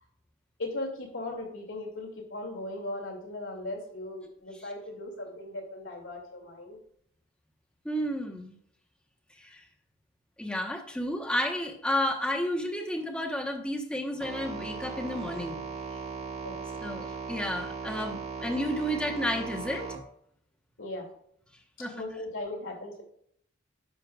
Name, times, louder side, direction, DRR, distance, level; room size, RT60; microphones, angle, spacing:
voice 1, 0.6-6.8 16.4-16.8 20.8-21.1 21.9-23.0, left 2 dB, 85° left, 0 dB, 2.4 m, -38 dB
voice 2, 7.8-8.6 9.4-9.6 10.4-15.6 16.8-19.9 21.8-22.0, equal, 5° left, 2 dB, 1.1 m, -31 dB
sound 1, 14.2-20.0, right 5 dB, 35° right, 1.6 m, -38 dB
10.0 x 6.6 x 2.4 m, 0.67 s
head